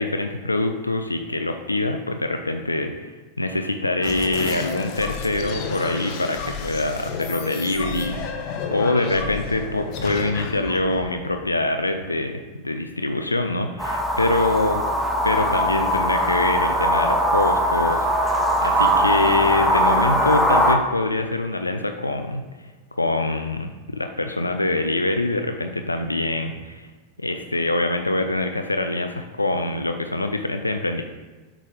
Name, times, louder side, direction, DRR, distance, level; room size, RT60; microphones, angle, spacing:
voice 1, 0.0-3.1 3.4-8.3 8.7-14.8 15.2-22.4 22.9-26.9 27.2-31.0, left 2 dB, 80° left, 6 dB, 0.5 m, -24 dB
sound 1, 4.0-12.2, left 5 dB, 40° left, 0.8 m, -31 dB
sound 2, 13.8-20.8, equal, ahead, 0.8 m, -20 dB
8.1 x 3.8 x 4.9 m, 1.2 s
figure-of-eight pair, 90°, 0 cm